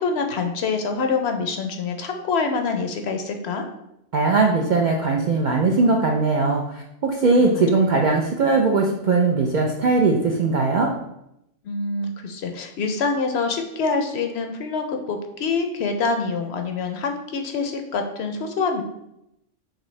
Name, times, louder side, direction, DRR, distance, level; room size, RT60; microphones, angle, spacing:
voice 1, 0.0-3.6 7.4-7.6 11.6-18.8, left 4 dB, 65° left, 5 dB, 0.7 m, -25 dB
voice 2, 4.1-10.9, right 3 dB, 65° right, 0 dB, 0.4 m, -20 dB
6.0 x 2.7 x 3.1 m, 0.83 s
omnidirectional pair, 1.3 m